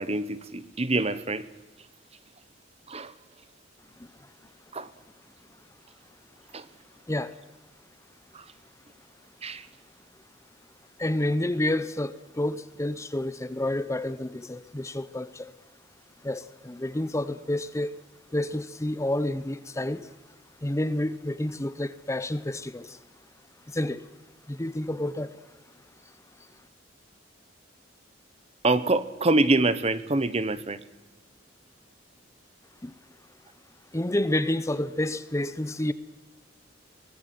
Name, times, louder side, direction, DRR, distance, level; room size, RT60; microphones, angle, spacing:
voice 1, 0.0-1.5 2.9-3.1 4.7-4.9 6.5-6.6 8.3-8.4 9.4-9.7 28.6-30.8, right 2 dB, 30° right, 1.1 m, -25 dB
voice 2, 4.0-4.3 7.1-7.4 11.0-15.5 16.2-18.0 18.3-20.1 20.6-23.0 23.7-24.1 24.5-25.4 26.4-26.5 32.8-32.9 33.9-35.9, left 1 dB, 15° left, 0.7 m, -29 dB
23.5 x 19.5 x 7.8 m
head